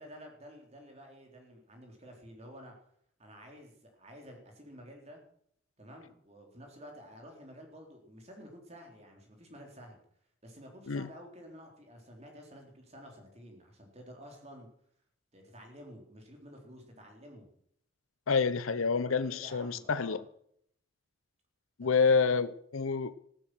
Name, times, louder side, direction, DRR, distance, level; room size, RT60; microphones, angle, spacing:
voice 1, 0.0-2.8 3.2-5.2 5.8-10.0 10.4-14.7 15.3-17.5 19.1-20.2 21.8-21.9, equal, 30° right, 2 dB, 3.7 m, -51 dB
voice 2, 18.3-20.2 21.8-23.1, left 5 dB, 85° left, 14 dB, 0.7 m, -28 dB
15.5 x 12.5 x 6.2 m, 0.67 s
head